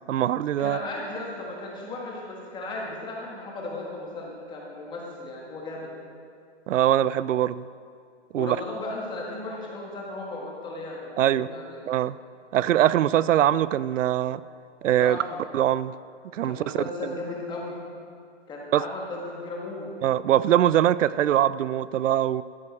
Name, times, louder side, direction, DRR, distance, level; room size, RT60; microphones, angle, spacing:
voice 1, 0.1-0.8 6.7-7.7 8.3-8.6 11.2-11.5 11.9-12.2 12.5-14.4 14.8-15.2 15.5-15.9 16.3-16.8 18.7-18.8 20.0-22.4, right 11 dB, 85° right, 18 dB, 0.5 m, -22 dB
voice 2, 0.6-5.9 8.3-11.8 15.0-15.4 16.4-17.7 18.5-19.9, left 2 dB, 10° left, -2 dB, 1.5 m, -35 dB
13.5 x 9.8 x 4.2 m, 2.3 s
hypercardioid pair, 150°, 37 cm